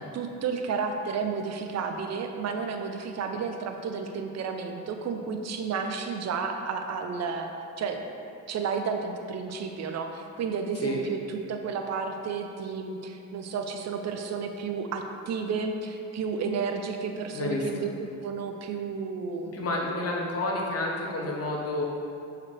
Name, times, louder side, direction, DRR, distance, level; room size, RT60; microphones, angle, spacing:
voice 1, 0.0-7.5 7.8-8.0 8.5-17.9 18.2-19.7, right 5 dB, 60° right, 5 dB, 0.6 m, -32 dB
voice 2, 17.3-17.9 19.5-21.9, left 2 dB, 50° left, -1 dB, 1.1 m, -30 dB
7.1 x 4.8 x 3.3 m, 2.5 s
cardioid pair, 90°, 30 cm